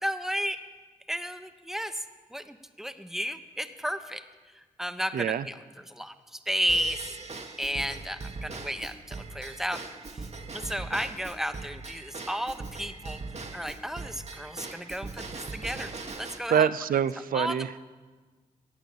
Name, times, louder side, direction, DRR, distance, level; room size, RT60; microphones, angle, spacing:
voice 1, 0.0-0.6 1.1-2.0 2.3-4.2 4.6-5.5 5.9-7.0 7.6-9.8 10.1-10.3 10.5-13.2 13.5-15.9 16.2-16.7 17.3-17.5, equal, ahead, 9 dB, 1.0 m, -33 dB
voice 2, 5.1-5.5 16.5-17.8, right 8 dB, 65° right, 15 dB, 0.5 m, -25 dB
Drum kit / Drum / Bell, 6.7-16.4, right 3 dB, 45° right, 1.3 m, -40 dB
14.5 x 8.9 x 6.8 m, 1.3 s
supercardioid pair, 45°, 16 cm